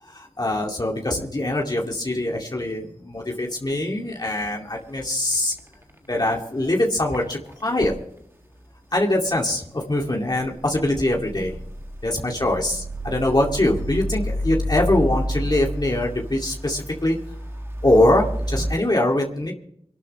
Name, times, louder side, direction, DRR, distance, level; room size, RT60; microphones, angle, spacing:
voice 1, 0.0-5.5 6.1-7.9 8.9-11.6 12.0-17.2 17.8-19.5, left 1 dB, 40° left, -1 dB, 2.3 m, -23 dB
sound 1, 4.8-5.0 5.3-6.0 6.3-6.4 7.0-8.0 10.1-18.8, equal, 25° right, 1.6 m, -30 dB
26.5 x 12.5 x 3.2 m, 0.70 s
wide cardioid pair, 70°, 11 cm